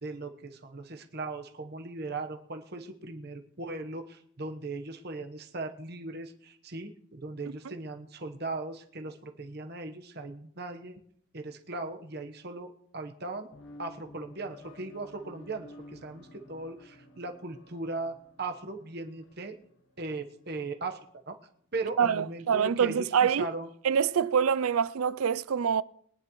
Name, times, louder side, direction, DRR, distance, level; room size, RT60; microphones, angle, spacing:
voice 1, 0.0-11.0 11.3-13.5 13.8-19.6 20.0-21.4 21.7-23.7, right 3 dB, 50° right, 1.1 m, -38 dB
sound 1, 13.5-20.8, left 1 dB, 60° left, 1.7 m, -53 dB
voice 2, 22.0-23.5 23.8-25.8, right 7 dB, 85° right, 0.4 m, -26 dB
22.5 x 10.0 x 3.1 m
head